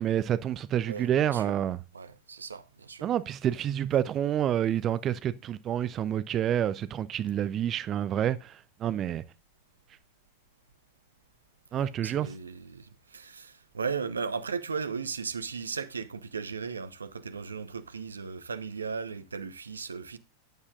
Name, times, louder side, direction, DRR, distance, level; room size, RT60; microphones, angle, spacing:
voice 1, 0.0-1.8 3.0-9.2 11.7-12.3, right 10 dB, 30° right, 0.6 m, -28 dB
voice 2, 0.9-1.6 1.9-3.1 11.7-20.2, right 5 dB, 75° right, 1.0 m, -36 dB
14.5 x 9.8 x 2.5 m
figure-of-eight pair, 90°, 0 cm